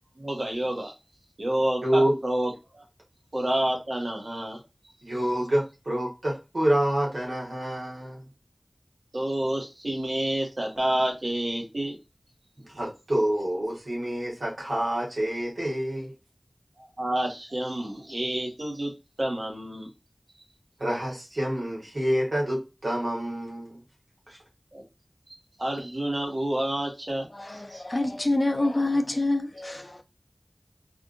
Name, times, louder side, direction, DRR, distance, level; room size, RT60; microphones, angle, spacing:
voice 1, 0.2-0.9 1.4-2.8 3.3-4.6 9.1-12.0 16.8-19.9 24.7-24.8 25.6-27.2 27.5-27.8, right 1 dB, 65° right, 1.2 m, -29 dB
voice 2, 1.8-2.2 5.0-8.3 12.6-16.1 20.8-23.8 24.3-24.4, right 1 dB, 90° right, 1.6 m, -27 dB
voice 3, 27.3-30.0, left 2 dB, 45° left, 0.4 m, -26 dB
3.5 x 2.5 x 2.4 m
wide cardioid pair, 45°, 0 cm